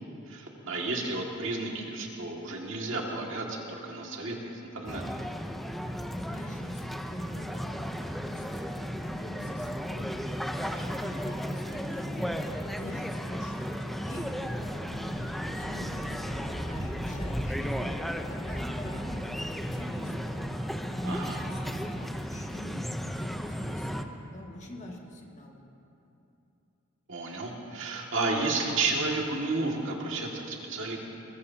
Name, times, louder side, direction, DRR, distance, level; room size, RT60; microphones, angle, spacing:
voice 1, 0.3-5.0 21.0-21.4 27.1-31.0, right 3 dB, 65° right, -1 dB, 2.1 m, -32 dB
sound 1, 4.9-24.0, equal, ahead, 0.7 m, -34 dB
voice 2, 5.7-25.6, left 1 dB, 35° left, -2 dB, 2.2 m, -44 dB
sound 2, 14.1-20.8, left 1 dB, 80° left, 1.7 m, -46 dB
23.0 x 20.5 x 2.9 m, 2.8 s
head